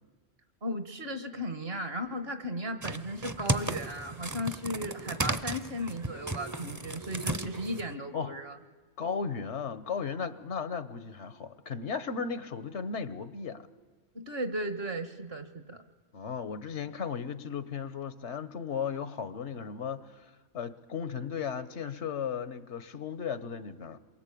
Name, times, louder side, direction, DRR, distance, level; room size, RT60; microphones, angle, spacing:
voice 1, 0.6-8.6 14.1-15.8, equal, 60° right, 1.9 m, -36 dB
sound 1, 2.8-7.9, right 1 dB, 20° right, 0.7 m, -35 dB
voice 2, 9.0-13.7 16.1-24.0, left 6 dB, 90° left, 1.4 m, -36 dB
27.5 x 23.0 x 8.6 m
omnidirectional pair, 1.1 m